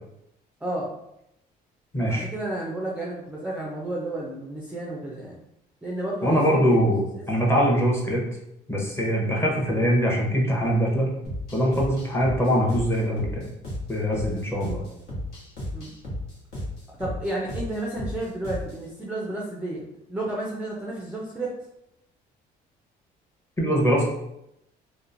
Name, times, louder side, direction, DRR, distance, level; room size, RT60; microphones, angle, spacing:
voice 1, 0.6-0.9 2.1-5.4 5.8-7.2 12.0-12.1 15.7-15.9 17.0-19.8 20.1-21.5, right 1 dB, 5° right, -3 dB, 0.4 m, -32 dB
voice 2, 1.9-2.2 6.2-8.3 8.7-11.1 11.5-13.5 13.9-14.8 23.6-24.0, equal, 15° left, -3 dB, 0.8 m, -23 dB
sound 1, 11.2-18.9, left 1 dB, 70° left, 1.1 m, -35 dB
2.9 x 2.1 x 2.5 m, 0.82 s
cardioid pair, 110°, 17 cm